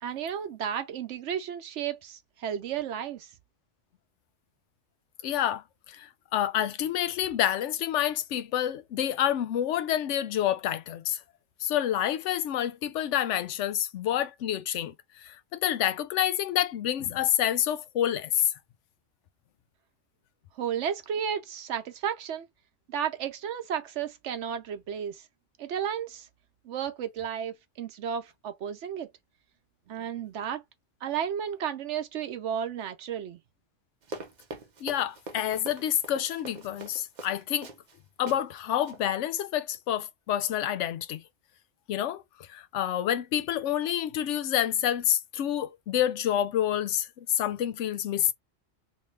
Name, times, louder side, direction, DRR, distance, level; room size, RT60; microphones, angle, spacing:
voice 1, 0.0-3.3 20.6-22.5 22.9-25.2 25.6-26.3 26.7-29.1 29.9-30.6 31.0-33.4, right 8 dB, 75° right, 0.9 m, -33 dB
voice 2, 5.2-11.2 11.6-18.5 34.8-37.7 38.2-41.2 41.9-48.3, left 11 dB, 80° left, 0.9 m, -28 dB
Run, 34.0-38.0 38.3-38.4 38.8-39.0, right 3 dB, 45° right, 0.7 m, -42 dB
3.1 x 2.7 x 3.2 m
omnidirectional pair, 1.2 m